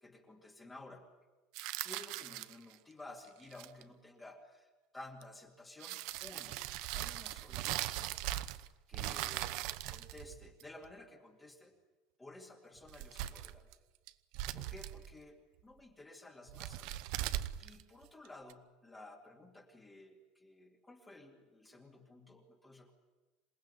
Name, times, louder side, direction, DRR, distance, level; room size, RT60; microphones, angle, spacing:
voice 1, 0.0-1.1 1.8-6.6 6.9-8.2 8.9-9.6 9.9-11.8 12.2-13.7 14.5-17.0 17.6-22.9, left 2 dB, 10° left, 1 dB, 2.3 m, -54 dB
sound 1, 1.5-2.7 3.4-3.8 5.2-5.3 5.8-8.7 8.9-10.9 12.8-13.7 14.1-15.1 16.5-18.5, right 14 dB, 60° right, 1.0 m, -40 dB
27.5 x 19.0 x 9.7 m, 1.2 s
cardioid pair, 170°, 0 cm